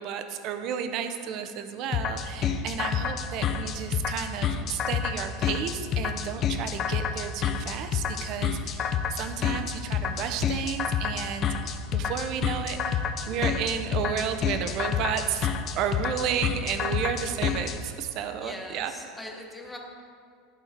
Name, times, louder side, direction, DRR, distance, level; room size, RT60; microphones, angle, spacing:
voice 1, 0.0-18.9, right 8 dB, 55° right, 8 dB, 0.6 m, -32 dB
sound 1, 1.9-17.8, left 7 dB, 40° left, 0.5 m, -28 dB
voice 2, 18.4-19.8, left 1 dB, 5° left, 1 dB, 1.1 m, -41 dB
11.0 x 3.8 x 4.3 m, 2.2 s
hypercardioid pair, 100°, 0 cm